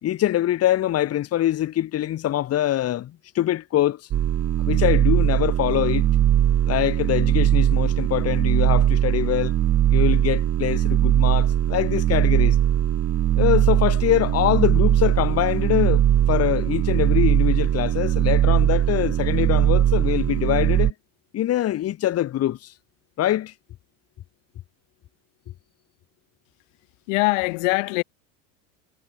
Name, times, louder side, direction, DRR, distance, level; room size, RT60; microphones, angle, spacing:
voice 1, 0.0-4.1 4.6-6.1 6.7-9.5 9.9-12.6 13.4-20.9 21.3-22.7 23.2-23.5, left 13 dB, 35° left, 1.8 m, -24 dB
sound 1, 4.1-20.9, right 11 dB, 35° right, 2.7 m, -20 dB
voice 2, 27.1-28.0, left 29 dB, 65° left, 1.9 m, -22 dB
supercardioid pair, 105°, 40 cm